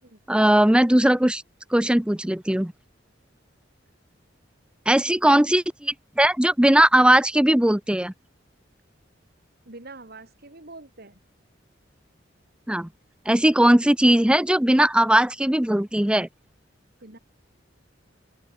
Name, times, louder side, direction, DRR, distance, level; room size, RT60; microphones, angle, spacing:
voice 1, 0.3-1.4 1.7-2.7 4.9-8.1 12.7-12.9 13.3-16.3, right 1 dB, 5° right, 0.6 m, -19 dB
voice 2, 9.7-11.2 17.0-17.2, right 2 dB, 55° right, 3.9 m, -44 dB
open air
head